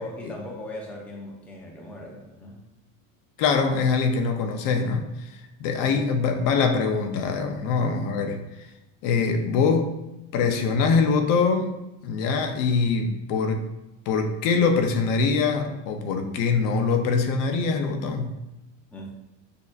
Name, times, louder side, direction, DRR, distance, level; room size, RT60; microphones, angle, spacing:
voice 1, 0.0-2.6 18.9-19.1, left 1 dB, 5° left, -2 dB, 0.5 m, -39 dB
voice 2, 3.4-8.4 9.0-9.9 10.3-11.7 12.0-13.7 14.1-18.4, left 5 dB, 55° left, 5 dB, 0.7 m, -23 dB
6.6 x 2.8 x 2.5 m, 0.97 s
supercardioid pair, 135°, 40 cm